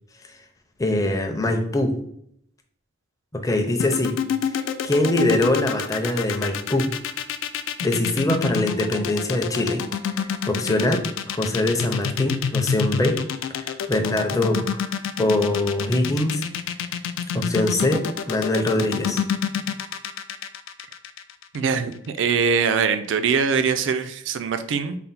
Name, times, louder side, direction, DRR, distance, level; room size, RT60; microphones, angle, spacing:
voice 1, 0.8-1.9 3.3-4.2 4.4-6.9 7.8-13.2 13.6-14.8 15.2-16.4 17.3-19.2, left 1 dB, 15° left, 4 dB, 0.5 m, -23 dB
sound 1, 3.8-21.9, left 8 dB, 90° left, 0.3 m, -27 dB
voice 2, 21.5-25.0, right 6 dB, 70° right, 10 dB, 0.4 m, -22 dB
4.2 x 2.0 x 4.0 m, 0.70 s
head